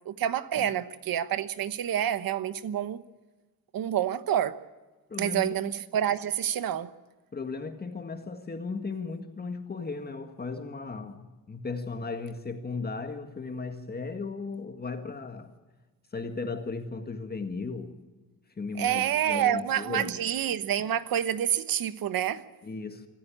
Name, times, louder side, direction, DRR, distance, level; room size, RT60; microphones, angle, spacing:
voice 1, 0.1-3.0 3.7-4.5 5.2-6.9 18.8-22.4, right 10 dB, 75° right, 1.1 m, -28 dB
voice 2, 5.1-5.5 7.3-15.5 16.1-18.0 18.6-20.2 22.6-23.1, left 4 dB, 25° left, 1.8 m, -36 dB
26.0 x 14.0 x 8.7 m
wide cardioid pair, 145°, 35 cm